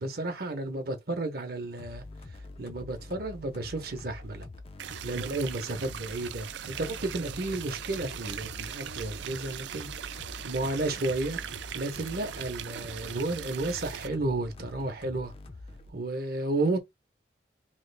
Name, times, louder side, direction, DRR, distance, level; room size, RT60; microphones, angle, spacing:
voice 1, 0.0-2.0 2.6-4.5 5.0-11.4 11.7-15.3 15.9-16.8, right 2 dB, 55° right, 0.8 m, -32 dB
sound 1, 1.8-15.9, left 2 dB, 30° left, 0.3 m, -45 dB
sound 2, 4.8-14.1, right 10 dB, 75° right, 0.3 m, -40 dB
3.0 x 2.4 x 3.3 m
head